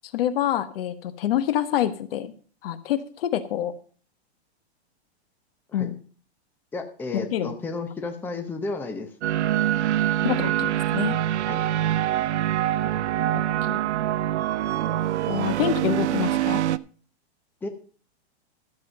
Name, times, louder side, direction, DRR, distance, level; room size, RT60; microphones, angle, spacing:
voice 1, 0.1-2.3 2.6-3.7 5.7-6.0 7.1-7.5 10.2-11.2 13.3-13.4 13.7-13.8 15.3-16.6, left 11 dB, 60° left, 12 dB, 1.2 m, -26 dB
voice 2, 6.7-9.1 11.5-11.6 17.6-17.7, left 3 dB, 5° left, 5 dB, 0.8 m, -32 dB
sound 1, 9.2-16.8, right 12 dB, 90° right, 0.6 m, -24 dB
13.0 x 7.6 x 5.4 m, 0.43 s
hypercardioid pair, 155°, 33 cm